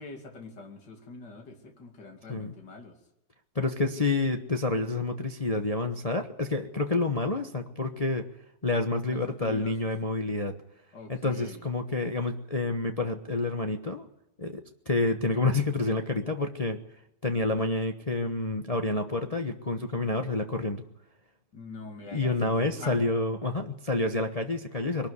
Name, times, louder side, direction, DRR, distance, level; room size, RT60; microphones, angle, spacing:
voice 1, 0.0-3.0 9.1-9.8 10.9-11.7 21.5-23.0, left 3 dB, 80° left, 3 dB, 3.2 m, -44 dB
voice 2, 3.5-8.3 8.6-10.5 11.1-14.1 14.4-16.8 17.2-20.8 22.1-25.1, left 2 dB, 25° left, 5 dB, 1.2 m, -28 dB
22.5 x 12.5 x 9.6 m, 0.81 s
omnidirectional pair, 1.8 m